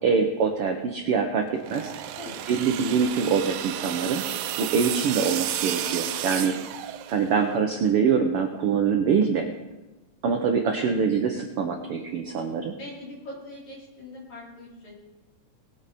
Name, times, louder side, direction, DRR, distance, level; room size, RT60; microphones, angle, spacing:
voice 1, 0.0-1.9 2.5-4.2 4.6-6.5 7.1-9.5 10.2-12.7, right 6 dB, 70° right, 4 dB, 1.4 m, -24 dB
sound 1, 1.6-7.4, right 12 dB, 85° right, 2.1 m, -32 dB
voice 2, 12.8-14.9, left 1 dB, 45° left, -5 dB, 4.7 m, -42 dB
19.5 x 8.8 x 4.2 m, 1.1 s
omnidirectional pair, 3.4 m